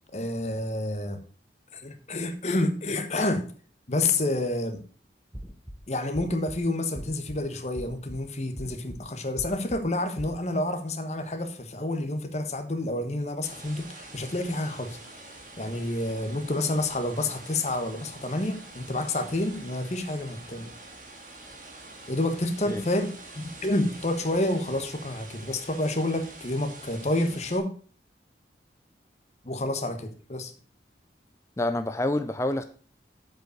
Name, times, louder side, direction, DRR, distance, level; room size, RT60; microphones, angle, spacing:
voice 1, 0.1-1.2 1.7-3.4 3.9-4.8 5.9-20.7 22.1-27.7 29.4-30.5, left 2 dB, 40° left, 7 dB, 1.2 m, -29 dB
sound 1, 5.3-5.8 6.1-6.6 6.9-7.4 7.7-8.2 8.6-9.0 9.4-9.8 10.2-10.4, equal, 15° right, 0.9 m, -39 dB
sound 2, 13.4-27.6, right 2 dB, 45° right, 1.9 m, -46 dB
voice 2, 31.6-32.6, left 1 dB, 15° left, 8 dB, 0.5 m, -27 dB
7.9 x 5.3 x 6.3 m, 0.41 s
head